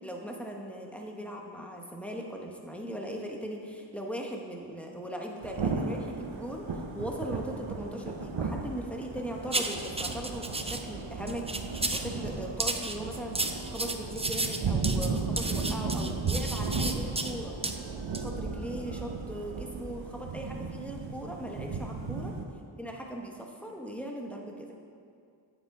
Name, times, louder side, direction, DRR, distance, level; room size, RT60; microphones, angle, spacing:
voice 1, 0.0-6.7 6.9-13.4 13.7-17.6 18.2-22.3 22.8-24.7, equal, 5° left, 0 dB, 1.1 m, -39 dB
Thunder / Rain, 5.4-22.4, right 4 dB, 75° right, 0.8 m, -35 dB
sound 1, 9.5-10.8 11.3-12.1 12.6-17.3 17.6-17.8 18.1-18.3, right 2 dB, 15° right, 0.5 m, -33 dB
9.5 x 7.9 x 3.8 m, 2.4 s
wide cardioid pair, 45°, 46 cm